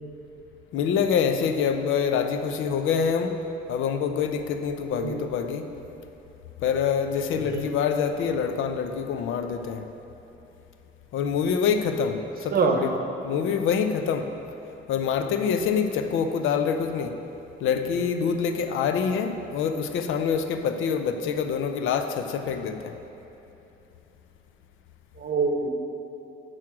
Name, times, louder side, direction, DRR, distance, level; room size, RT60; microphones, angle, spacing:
voice 1, 0.7-3.4 3.7-5.7 6.6-9.8 11.1-12.9 13.2-14.3 14.9-17.2 17.6-22.9, left 6 dB, 80° left, 7 dB, 0.5 m, -26 dB
voice 2, 25.2-25.7, right 5 dB, 50° right, 3 dB, 0.8 m, -25 dB
6.1 x 6.1 x 4.8 m, 2.9 s
cardioid pair, 90°, 20 cm